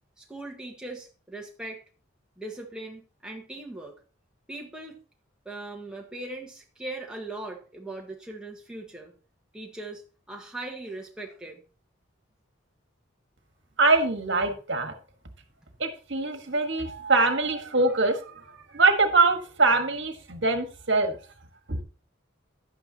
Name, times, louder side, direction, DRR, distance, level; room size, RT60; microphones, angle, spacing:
voice 1, 0.2-1.8 2.4-4.0 4.5-5.0 5.4-9.1 9.5-10.0 10.3-11.6, right 2 dB, 5° right, 0 dB, 1.4 m, -39 dB
voice 2, 13.8-14.9 15.8-21.2 21.7-21.8, right 3 dB, 60° right, 6 dB, 1.5 m, -23 dB
11.0 x 8.8 x 2.9 m, 0.38 s
head